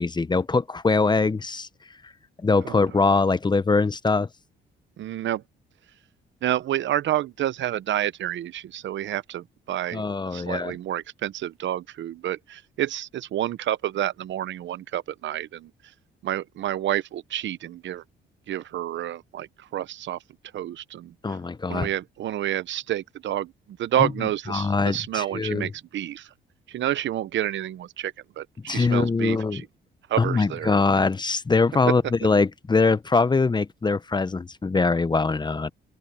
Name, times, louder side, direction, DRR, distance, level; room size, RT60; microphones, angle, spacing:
voice 1, 0.0-1.7 2.4-4.3 9.9-10.7 21.2-21.9 24.0-24.1 24.5-25.7 28.7-29.6 30.2-35.7, left 4 dB, 20° left, 0.8 m, -22 dB
voice 2, 2.6-3.1 5.0-5.4 6.4-10.0 10.3-15.7 16.2-18.0 18.5-19.5 19.7-20.2 20.5-21.1 21.7-23.5 23.8-26.3 26.7-29.7 30.1-30.7, right 12 dB, 70° right, 0.9 m, -29 dB
open air
cardioid pair, 90°, 20 cm